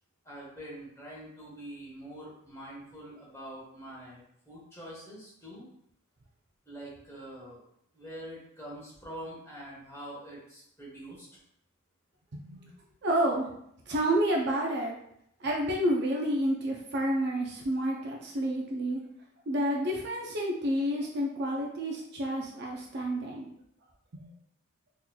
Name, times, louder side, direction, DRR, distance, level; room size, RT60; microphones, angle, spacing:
voice 1, 0.2-4.2 4.5-5.7 6.7-7.6 7.9-11.3, right 1 dB, 15° left, -6 dB, 1.1 m, -45 dB
voice 2, 12.3-12.6 13.0-13.5 13.9-15.0 15.4-19.0 19.5-23.5 24.1-24.3, right 1 dB, 50° right, -1 dB, 0.5 m, -29 dB
3.8 x 3.0 x 2.2 m, 0.72 s
head